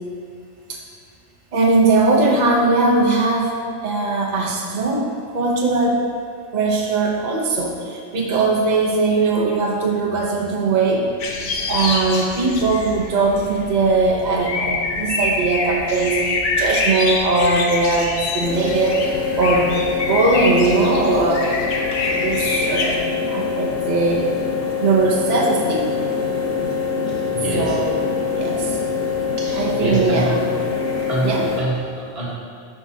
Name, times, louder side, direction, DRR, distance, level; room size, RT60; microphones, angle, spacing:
voice 1, 1.5-3.5 3.8-6.0 6.5-11.1 11.7-19.0 19.4-21.5 22.1-23.0 23.3-24.3 24.8-26.0 27.5-28.8 29.5-30.4 31.2-31.5, right 3 dB, 40° right, -1 dB, 0.9 m, -20 dB
sound 1, 11.2-23.0, left 3 dB, 85° left, 1.0 m, -25 dB
sound 2, 18.4-31.6, left 5 dB, 40° left, 1.0 m, -24 dB
voice 2, 27.3-27.8 29.4-30.3 31.1-32.4, right 3 dB, 55° right, -6 dB, 1.7 m, -25 dB
9.0 x 5.9 x 2.8 m, 2.5 s
omnidirectional pair, 1.2 m